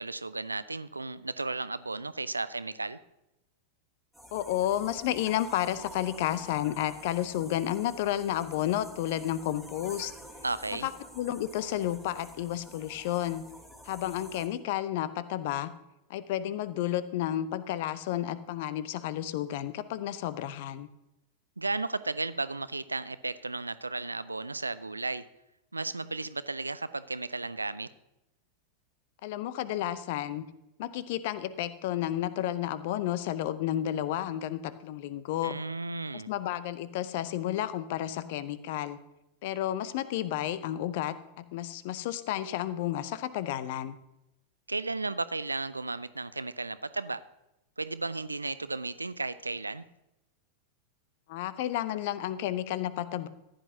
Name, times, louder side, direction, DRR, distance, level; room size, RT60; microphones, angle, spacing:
voice 1, 0.0-3.0 10.4-10.9 21.6-25.2 25.7-27.9 35.4-36.3 44.7-47.2 47.8-49.8, right 3 dB, 80° right, 16 dB, 0.4 m, -34 dB
sound 1, 4.1-14.5, equal, 5° left, 2.6 m, -49 dB
voice 2, 4.3-10.1 10.8-10.9 11.2-13.4 13.9-15.7 16.1-20.9 29.2-30.4 30.8-35.5 36.3-39.0 39.4-44.0 51.3-53.3, left 12 dB, 50° left, 15 dB, 0.7 m, -31 dB
15.0 x 10.5 x 2.8 m, 0.89 s
figure-of-eight pair, 90°, 0 cm